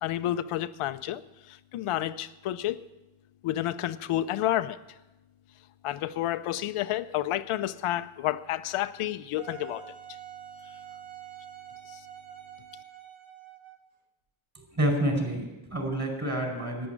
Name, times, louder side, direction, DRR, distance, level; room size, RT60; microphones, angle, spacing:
voice 1, 0.0-1.2 1.5-2.9 3.4-4.8 5.8-9.9, left 13 dB, 85° left, 11 dB, 0.7 m, -30 dB
Wind instrument woodwind instrument, 9.4-13.9, right 10 dB, 80° right, 1.6 m, -46 dB
voice 2, 14.5-16.9, right 1 dB, 35° right, 2 dB, 4.9 m, -28 dB
11.0 x 9.7 x 8.9 m, 1.0 s
cardioid pair, 100°, 49 cm